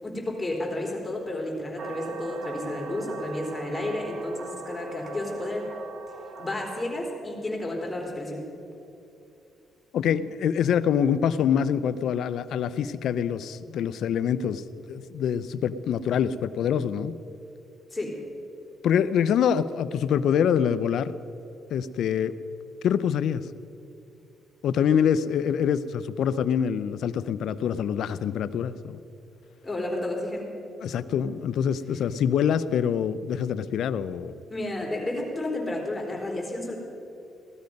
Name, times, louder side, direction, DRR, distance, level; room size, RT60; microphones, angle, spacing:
voice 1, 0.0-5.7 6.4-8.5 17.9-18.2 29.6-30.5 34.5-36.8, left 1 dB, 20° left, -1 dB, 3.9 m, -31 dB
sound 1, 1.8-6.9, right 4 dB, 55° right, 1.2 m, -40 dB
voice 2, 9.9-17.2 18.8-21.1 21.7-22.4 22.8-23.4 24.6-29.0 30.8-34.4, left 8 dB, 75° left, 14 dB, 0.6 m, -25 dB
17.5 x 13.0 x 5.3 m, 2.8 s
cardioid pair, 90°, 0 cm